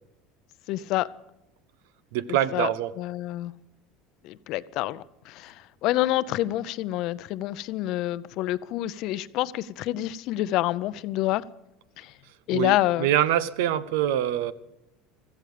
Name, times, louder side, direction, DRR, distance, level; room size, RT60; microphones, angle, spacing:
voice 1, 0.7-1.1 2.3-2.7 3.0-3.5 4.2-11.4 12.0-12.1 12.5-13.1, left 15 dB, 60° left, 0.7 m, -27 dB
voice 2, 2.1-2.9 12.5-14.5, right 11 dB, 80° right, 0.9 m, -25 dB
16.0 x 14.0 x 5.1 m
supercardioid pair, 120°, 0 cm